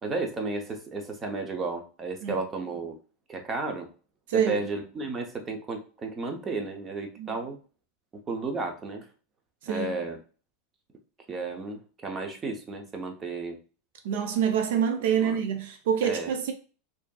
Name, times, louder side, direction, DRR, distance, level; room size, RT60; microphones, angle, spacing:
voice 1, 0.0-3.0 3.3-3.9 4.3-7.6 8.1-9.1 9.7-10.2 11.3-13.6 15.2-15.4 16.0-16.3, right 3 dB, 15° right, 0.6 m, -33 dB
voice 2, 4.3-4.7 7.2-7.3 9.6-10.0 14.0-16.5, right 8 dB, 70° right, 0.5 m, -26 dB
4.9 x 2.7 x 2.3 m
supercardioid pair, 170°, 0 cm